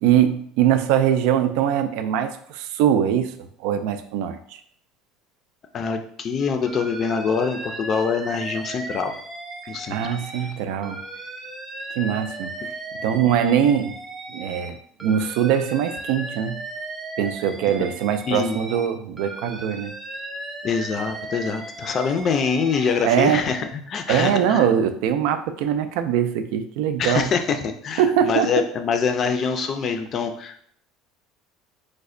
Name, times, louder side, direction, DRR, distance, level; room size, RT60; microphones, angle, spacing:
voice 1, 0.0-3.3 3.6-4.4 9.9-11.0 12.0-12.5 13.0-14.0 14.3-16.6 17.2-19.9 23.0-23.4 24.1-27.3 28.0-28.5, right 9 dB, 75° right, 8 dB, 0.3 m, -22 dB
voice 2, 5.7-9.1 9.7-10.0 10.4-10.5 18.3-18.6 20.6-24.7 27.0-30.6, left 5 dB, 40° left, 6 dB, 0.4 m, -24 dB
Alarm, 6.7-10.5 10.8-14.7 15.0-18.9 19.2-23.0, right 2 dB, 20° right, 0.5 m, -36 dB
3.2 x 2.1 x 3.7 m, 0.63 s
supercardioid pair, 125°, 0 cm